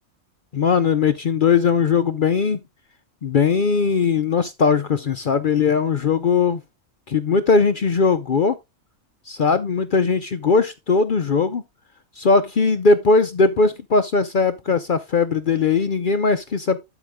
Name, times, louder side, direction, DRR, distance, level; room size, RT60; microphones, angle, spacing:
voice 1, 0.5-2.6 3.2-6.6 7.1-8.6 9.3-11.6 12.2-16.8, left 4 dB, 55° left, 0.6 m, -19 dB
12.0 x 5.0 x 3.5 m
omnidirectional pair, 1.5 m